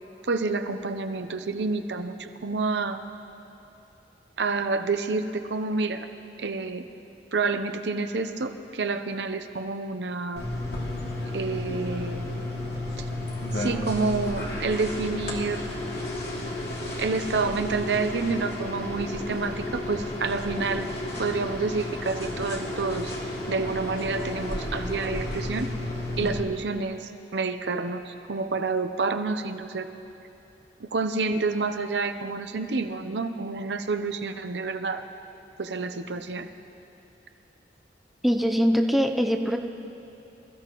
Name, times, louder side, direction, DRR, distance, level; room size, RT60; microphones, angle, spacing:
voice 1, 0.2-3.0 4.4-6.1 6.4-6.8 7.3-10.4 11.3-12.3 13.0-13.1 13.5-15.7 17.0-20.9 21.2-23.1 23.5-25.7 26.2-29.9 30.8-35.1 35.6-36.5, right 3 dB, 70° right, 8 dB, 0.7 m, -28 dB
sound 1, 10.4-26.4, left 1 dB, 65° left, 2.6 m, -32 dB
voice 2, 38.2-39.6, equal, ahead, 3 dB, 0.6 m, -23 dB
27.0 x 14.5 x 3.1 m, 2.9 s
head